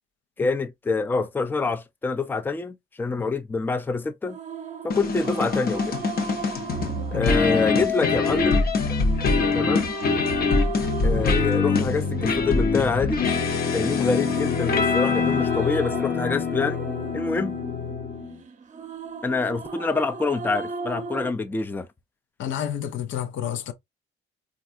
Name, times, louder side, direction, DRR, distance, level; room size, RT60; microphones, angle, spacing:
voice 1, 0.4-4.4 4.8-6.0 7.1-8.6 9.5-9.9 11.0-13.2 13.7-16.8 17.1-17.5 19.2-21.9, left 4 dB, 10° left, 0.4 m, -26 dB
sound 1, 4.2-21.3, right 5 dB, 40° right, 0.7 m, -37 dB
Rock music intro for podcasts or shows, 4.9-18.4, left 4 dB, 50° left, 0.9 m, -24 dB
voice 2, 22.4-23.7, left 10 dB, 75° left, 0.6 m, -29 dB
3.3 x 2.4 x 2.6 m
cardioid pair, 90°, 20 cm